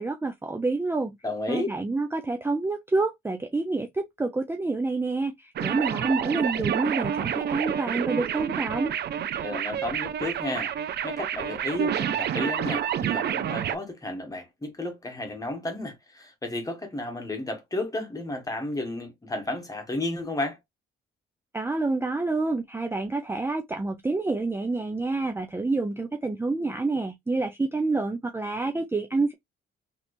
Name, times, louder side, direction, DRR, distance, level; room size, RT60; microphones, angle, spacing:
voice 1, 0.0-1.2 1.5-8.9 21.5-29.3, right 3 dB, 10° right, 0.5 m, -28 dB
voice 2, 1.2-1.8 9.4-10.7 11.0-20.6, left 2 dB, 15° left, 1.4 m, -32 dB
sound 1, 5.6-13.8, right 9 dB, 55° right, 0.5 m, -29 dB
3.2 x 3.0 x 2.6 m
cardioid pair, 90°, 20 cm